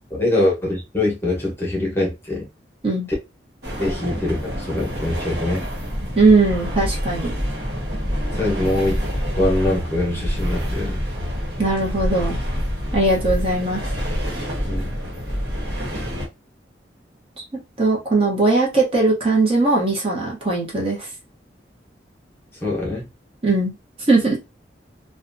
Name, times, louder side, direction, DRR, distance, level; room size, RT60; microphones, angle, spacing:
voice 1, 0.1-2.5 3.8-5.6 8.3-9.0 9.4-11.0 14.7-15.0 22.6-23.0, left 2 dB, 15° left, 0.9 m, -23 dB
sound 1, 3.6-16.3, equal, 65° right, 1.2 m, -27 dB
voice 2, 6.2-7.3 11.6-12.4 12.9-13.8 17.8-21.1 23.4-23.7 24.1-24.4, right 3 dB, 30° right, 0.8 m, -19 dB
2.7 x 2.2 x 2.5 m
head